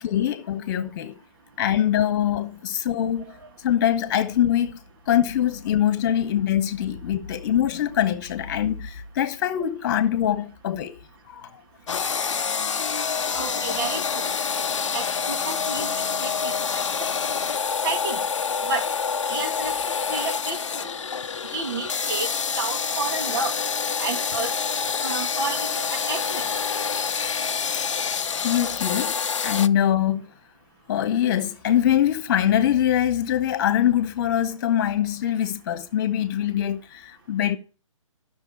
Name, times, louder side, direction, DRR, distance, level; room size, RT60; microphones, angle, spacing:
voice 1, 0.0-1.2 1.6-3.2 3.6-4.8 5.1-11.0 11.3-11.5 28.4-30.3 30.9-37.6, left 10 dB, 35° left, 1.6 m, -23 dB
sound 1, 11.9-29.7, left 6 dB, 65° left, 0.7 m, -27 dB
voice 2, 13.3-14.3 14.9-16.5 17.8-18.2 18.6-18.9 19.3-19.8 20.1-20.9 21.5-23.5 24.0-26.5, right 4 dB, 40° right, 2.2 m, -31 dB
13.5 x 6.6 x 4.8 m
figure-of-eight pair, 135°, 17 cm